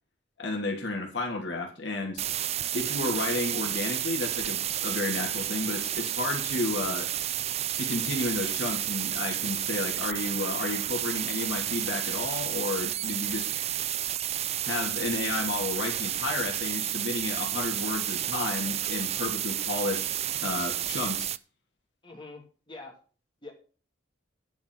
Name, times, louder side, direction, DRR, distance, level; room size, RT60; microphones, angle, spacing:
voice 1, 0.4-2.2 2.7-7.1 7.8-13.5 14.6-21.3, left 2 dB, 80° left, 2 dB, 2.9 m, -32 dB
sound 1, 2.2-21.4, right 12 dB, 35° right, 0.4 m, -31 dB
voice 2, 22.0-23.0 23.4-23.5, left 3 dB, 25° left, 0 dB, 2.7 m, -44 dB
10.5 x 5.2 x 7.7 m, 0.39 s
head